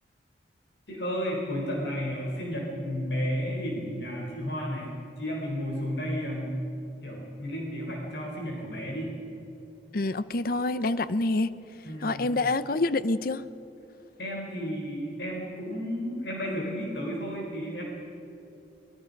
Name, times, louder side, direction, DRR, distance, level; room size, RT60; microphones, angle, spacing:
voice 1, 0.9-6.6 7.0-9.1 11.8-12.3 14.2-17.8, equal, 75° left, -1 dB, 4.0 m, -32 dB
voice 2, 9.9-11.5 12.0-13.4, left 2 dB, 55° left, 14 dB, 0.7 m, -27 dB
25.0 x 20.5 x 5.3 m, 3.0 s
head